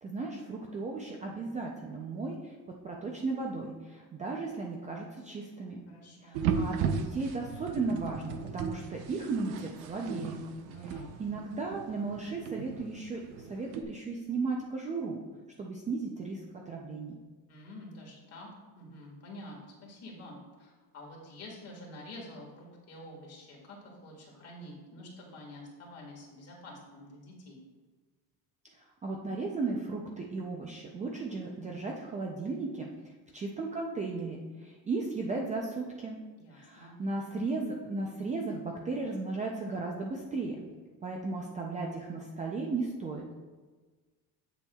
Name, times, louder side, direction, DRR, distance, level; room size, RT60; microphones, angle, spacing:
voice 1, 0.0-2.5 2.8-5.9 6.2-10.4 11.2-15.2 15.6-17.2 28.8-32.9 33.3-36.2 36.5-40.6 41.0-43.3, right 3 dB, 20° right, -1 dB, 0.4 m, -35 dB
voice 2, 5.9-6.5 10.7-11.1 17.5-18.5 18.7-27.6 36.3-37.0, left 1 dB, 40° left, -1 dB, 1.7 m, -48 dB
sound 1, 6.3-13.8, right 6 dB, 70° right, 0.7 m, -36 dB
8.1 x 7.0 x 2.3 m, 1.4 s
cardioid pair, 165°, 39 cm